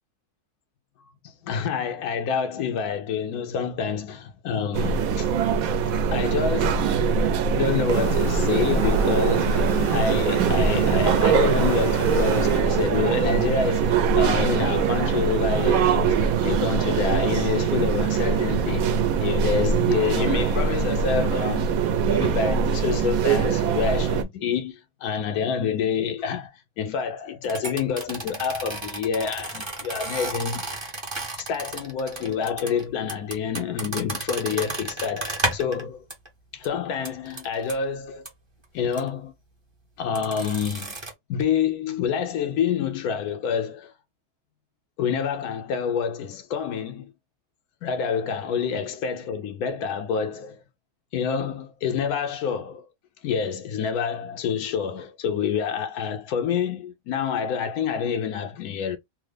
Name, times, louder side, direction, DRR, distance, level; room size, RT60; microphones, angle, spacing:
voice 1, 1.2-5.3 6.1-6.9 7.5-21.7 22.1-30.7 31.4-36.1 36.5-38.3 38.7-39.3 40.0-41.0 41.3-43.9 45.0-47.1 47.8-50.6 51.1-52.9 53.2-59.0, left 7 dB, 90° left, 1.1 m, -27 dB
sound 1, 4.7-24.2, right 6 dB, 75° right, 1.0 m, -22 dB
sound 2, 7.9-12.6, right 3 dB, 45° right, 1.2 m, -30 dB
sound 3, 27.4-35.8 36.1-36.3 36.6-36.7 37.1-37.8 38.3-38.4 38.9-39.1 40.2-41.1, right 2 dB, 25° right, 0.6 m, -32 dB
3.4 x 2.0 x 3.2 m
omnidirectional pair, 1.5 m